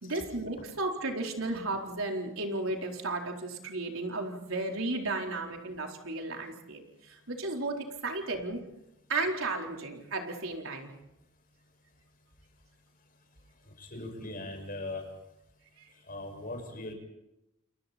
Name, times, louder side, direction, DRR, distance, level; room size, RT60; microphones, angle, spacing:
voice 1, 0.0-8.6 9.1-10.9, right 2 dB, 85° right, 1 dB, 4.3 m, -34 dB
voice 2, 13.8-15.0 16.1-16.9, left 2 dB, 45° left, 3 dB, 6.5 m, -40 dB
30.0 x 29.0 x 4.4 m, 0.87 s
head